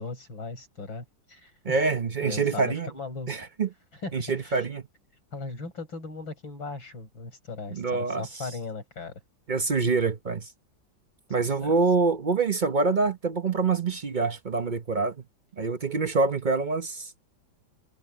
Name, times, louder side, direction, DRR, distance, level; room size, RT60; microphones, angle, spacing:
voice 1, 0.0-1.8 2.2-3.5 3.9-4.7 5.3-9.2 11.6-11.7, left 3 dB, 80° left, 7.0 m, -38 dB
voice 2, 1.6-2.9 3.3-3.7 4.1-4.8 7.7-8.3 9.5-10.5 11.3-15.2 15.6-17.1, right 4 dB, 45° right, 0.6 m, -26 dB
omnidirectional pair, 2.1 m